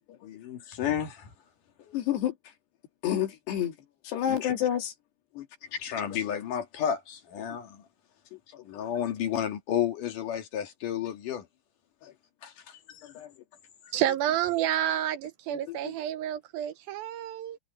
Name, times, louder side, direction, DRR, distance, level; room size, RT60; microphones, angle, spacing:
voice 1, 0.2-1.3 1.8-2.0 4.3-4.5 5.7-7.8 8.6-11.4 12.4-13.0, left 9 dB, 55° left, 3.4 m, -32 dB
voice 2, 1.9-2.3 3.0-3.7 4.1-4.9 5.4-5.5 8.7-8.8 13.2-13.3 15.7-15.8, left 10 dB, 85° left, 4.3 m, -29 dB
voice 3, 13.9-17.6, right 11 dB, 80° right, 2.3 m, -29 dB
omnidirectional pair, 4.7 m